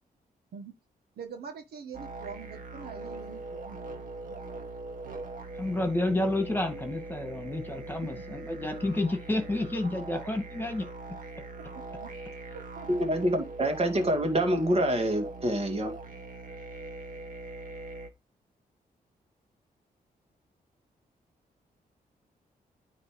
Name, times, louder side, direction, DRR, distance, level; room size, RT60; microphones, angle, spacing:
voice 1, 1.1-4.4 8.0-8.3 9.8-9.9 10.2-10.3 11.7-12.1 12.5-12.9 13.2-13.3, right 6 dB, 80° right, 1.6 m, -44 dB
sound 1, 1.9-18.1, right 2 dB, 55° right, 1.7 m, -42 dB
voice 2, 5.6-10.9, left 2 dB, 10° left, 2.1 m, -30 dB
voice 3, 13.0-15.9, right 1 dB, 40° right, 2.3 m, -26 dB
9.5 x 3.3 x 5.0 m
cardioid pair, 100°, 16 cm